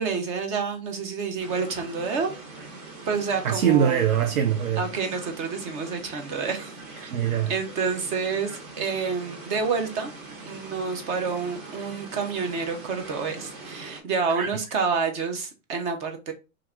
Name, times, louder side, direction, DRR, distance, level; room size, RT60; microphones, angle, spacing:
voice 1, 0.0-2.3 3.1-4.0 4.8-7.1 7.5-10.1 10.5-16.3, right 5 dB, 20° right, 0.3 m, -28 dB
sound 1, 1.4-14.0, right 3 dB, 40° right, 1.1 m, -42 dB
voice 2, 3.4-4.8 7.1-7.5 14.3-14.5, right 9 dB, 85° right, 0.6 m, -22 dB
2.8 x 2.4 x 3.4 m
hypercardioid pair, 110°, 42 cm